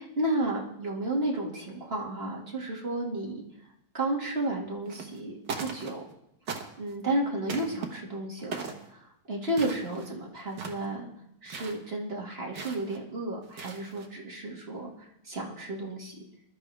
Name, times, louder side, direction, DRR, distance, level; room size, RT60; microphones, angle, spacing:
voice 1, 0.0-3.4 3.9-6.0 6.8-11.1 11.4-16.2, right 1 dB, 25° right, -2 dB, 2.4 m, -32 dB
sound 1, 4.9-5.2 5.5-6.1 6.5-7.0 7.5-7.9 8.5-8.9 9.5-10.1 10.5-10.9 11.5-11.8 12.5-13.0 13.4-14.1, right 5 dB, 55° right, 2.0 m, -38 dB
20.5 x 12.5 x 3.5 m, 0.77 s
omnidirectional pair, 2.4 m